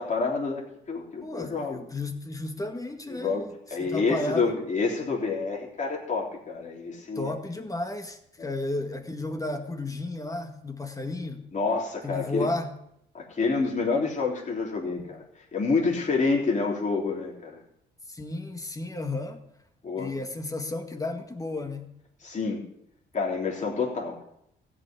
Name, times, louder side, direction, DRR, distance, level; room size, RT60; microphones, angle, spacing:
voice 1, 0.0-1.8 3.1-7.3 11.5-12.5 13.1-15.2 15.5-17.6 19.8-20.1 22.2-22.6 23.1-24.2, left 4 dB, 40° left, -2 dB, 3.5 m, -28 dB
voice 2, 1.2-3.5 3.8-4.5 7.2-11.4 12.0-12.7 15.0-15.1 18.1-19.4 20.0-21.9, left 2 dB, 15° left, 5 dB, 1.9 m, -33 dB
15.0 x 5.9 x 9.1 m, 0.76 s
cardioid pair, 90°, 20 cm